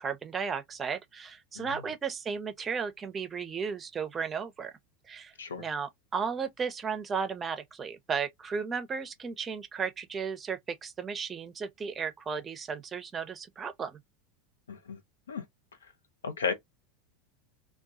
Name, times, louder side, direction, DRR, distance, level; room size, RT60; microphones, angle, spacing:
voice 1, 0.0-4.7 5.1-5.3 5.6-14.0, right 6 dB, 25° right, 0.6 m, -34 dB
voice 2, 14.7-15.0 15.3-15.4 16.2-16.5, left 6 dB, 80° left, 0.6 m, -33 dB
2.2 x 2.2 x 2.7 m
hypercardioid pair, 85°, 0 cm